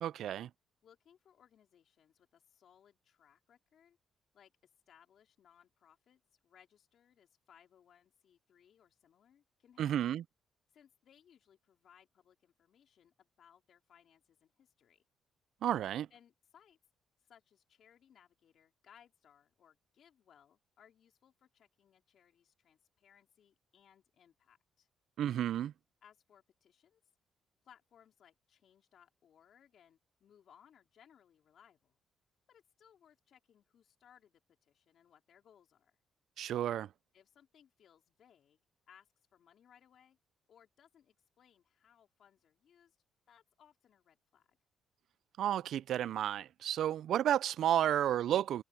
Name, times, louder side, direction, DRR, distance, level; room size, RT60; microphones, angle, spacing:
voice 1, 0.0-0.5 9.8-10.2 15.6-16.1 25.2-25.7 36.4-36.9 45.4-48.6, right 11 dB, 75° right, 0.4 m, -32 dB
voice 2, 0.8-4.0 4.3-10.0 10.7-15.0 16.1-16.8 17.2-24.9 26.0-27.0 27.6-32.0 32.5-36.0 37.1-40.2 40.5-43.0 43.3-44.6, left 9 dB, 65° left, 4.0 m, -65 dB
cardioid pair, 90°, 0 cm